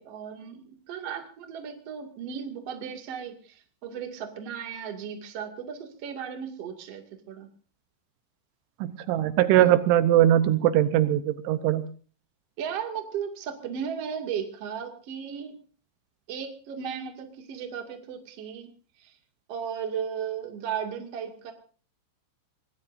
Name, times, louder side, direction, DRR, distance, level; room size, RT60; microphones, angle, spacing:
voice 1, 0.0-7.5 12.6-15.5 16.3-18.7 19.0-19.2 19.5-21.5, right 7 dB, 40° right, 4 dB, 2.4 m, -35 dB
voice 2, 8.8-11.8, right 12 dB, 80° right, 11 dB, 3.2 m, -21 dB
25.0 x 20.0 x 2.6 m, 0.39 s
omnidirectional pair, 5.6 m